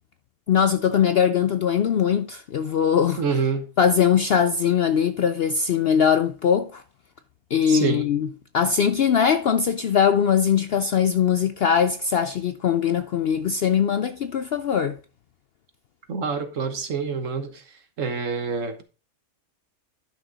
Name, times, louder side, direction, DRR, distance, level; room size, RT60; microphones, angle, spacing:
voice 1, 0.5-3.2 3.8-6.8 7.5-8.3 8.5-15.0, left 8 dB, 65° left, 0.6 m, -21 dB
voice 2, 3.2-3.7 7.7-8.0 16.1-17.6 18.0-18.8, right 5 dB, 65° right, 1.5 m, -26 dB
10.5 x 6.1 x 3.9 m
omnidirectional pair, 1.5 m